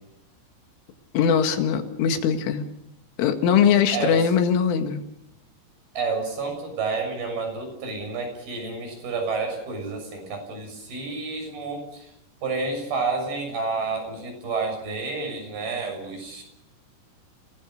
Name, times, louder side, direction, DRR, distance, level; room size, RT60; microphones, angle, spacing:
voice 1, 1.1-2.6 3.2-5.0, left 7 dB, 80° left, 6 dB, 4.4 m, -21 dB
voice 2, 3.9-4.3 5.9-12.1 12.4-16.4, right 4 dB, 50° right, 5 dB, 8.5 m, -30 dB
29.0 x 19.0 x 6.6 m, 0.80 s
omnidirectional pair, 5.6 m